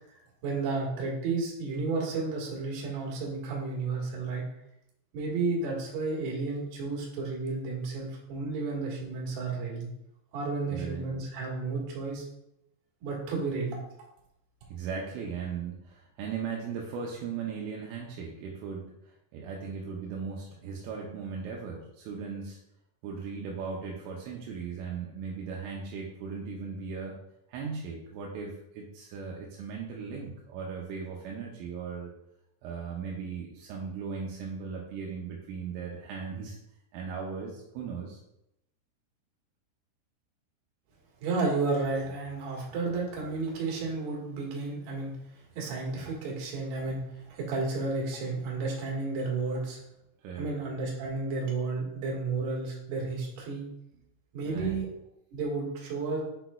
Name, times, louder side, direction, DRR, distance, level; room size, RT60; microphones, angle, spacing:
voice 1, 0.4-4.5 5.1-9.9 10.3-12.2 13.0-13.8 41.2-45.1 45.5-47.0 47.3-49.8 50.4-53.7 54.3-54.9 55.3-56.2, right 3 dB, 65° right, -3 dB, 3.3 m, -32 dB
voice 2, 10.7-11.0 14.7-22.6 23.0-27.2 27.5-32.1 32.6-36.6 36.9-38.2 50.2-50.5 54.5-54.8, right 5 dB, 80° right, -2 dB, 3.2 m, -37 dB
7.9 x 6.0 x 2.3 m, 0.82 s
omnidirectional pair, 5.8 m